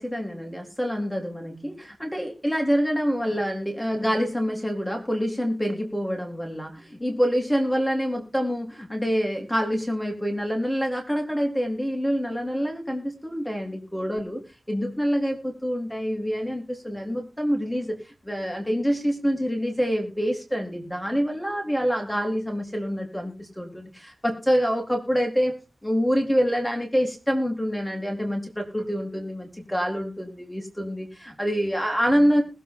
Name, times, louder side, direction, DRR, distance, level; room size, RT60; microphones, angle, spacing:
voice 1, 0.0-14.4 14.7-18.0 18.2-32.4, equal, 5° left, 2 dB, 4.0 m, -26 dB
20.5 x 7.9 x 3.8 m, 0.33 s
wide cardioid pair, 85°, 0 cm